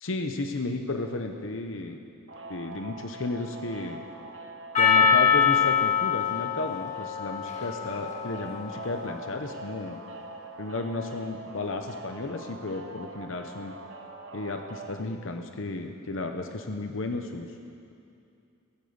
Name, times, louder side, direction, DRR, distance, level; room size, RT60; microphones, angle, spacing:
voice 1, 0.0-2.0 2.5-4.0 4.8-10.0 10.6-13.7 14.3-17.5, left 2 dB, 70° left, 5 dB, 0.9 m, -33 dB
sound 1, 2.3-15.0, right 2 dB, 70° right, 1.1 m, -43 dB
Percussion, 4.7-9.3, left 7 dB, 35° left, 1.6 m, -24 dB
17.0 x 8.5 x 8.0 m, 2.5 s
head